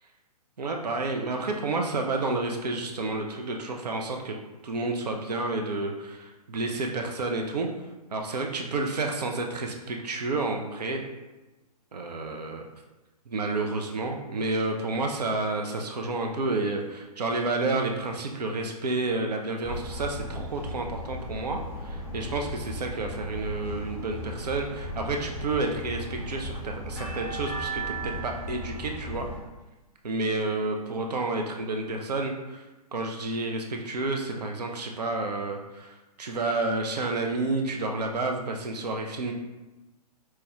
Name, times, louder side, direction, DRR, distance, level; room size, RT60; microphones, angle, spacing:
voice 1, 0.6-4.4 4.6-7.7 8.1-11.0 11.9-12.6 13.3-29.3 30.0-39.3, right 2 dB, 75° right, 2 dB, 0.5 m, -30 dB
sound 1, 19.6-29.4, equal, 10° left, 0.9 m, -36 dB
4.4 x 2.2 x 2.9 m, 1.1 s
figure-of-eight pair, 125°, 21 cm